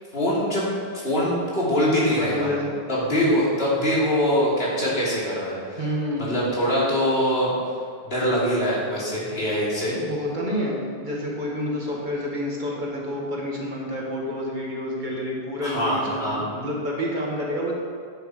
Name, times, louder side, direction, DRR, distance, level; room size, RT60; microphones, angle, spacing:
voice 1, 0.1-0.7 1.0-2.5 2.9-5.8 6.2-7.5 8.0-10.0 15.6-16.4, equal, 75° left, -7 dB, 3.1 m, -23 dB
voice 2, 2.2-2.7 3.1-3.3 5.8-6.4 10.0-17.7, equal, 50° right, -3 dB, 2.0 m, -29 dB
9.4 x 7.9 x 4.9 m, 2.2 s
omnidirectional pair, 1.0 m